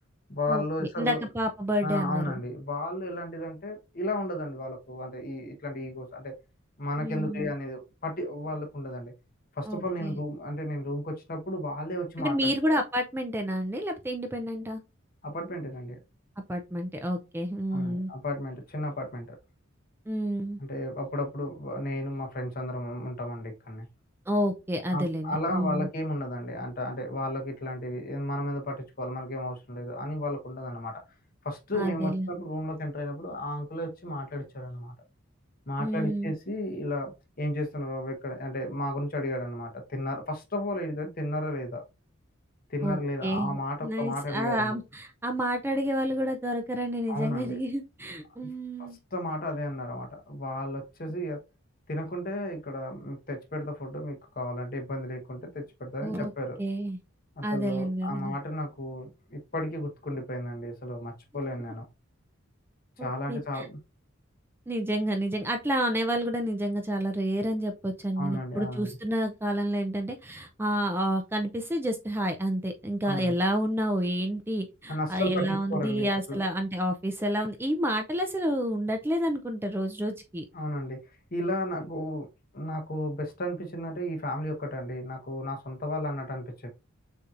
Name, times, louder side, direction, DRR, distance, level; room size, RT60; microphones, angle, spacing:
voice 1, 0.3-1.2 1.8-6.3 6.8-9.1 9.6-12.5 15.2-16.0 17.7-19.4 20.6-23.9 24.9-31.0 31.4-34.9 35.7-41.8 42.7-44.7 47.1-47.6 48.8-51.4 51.9-56.6 57.4-61.8 63.0-63.8 68.2-68.9 73.0-73.3 74.9-76.4 80.5-81.0 81.3-82.3 82.5-86.7, left 1 dB, 45° left, 1.0 m, -33 dB
voice 2, 1.0-2.4 7.0-7.5 9.7-10.2 12.2-14.8 16.5-18.1 20.1-20.6 24.3-25.9 31.7-32.3 35.8-36.3 42.8-49.0 56.0-56.3 56.6-57.0 57.4-58.4 63.0-63.7 64.7-80.4, equal, 10° right, 0.4 m, -29 dB
6.7 x 2.8 x 2.4 m
head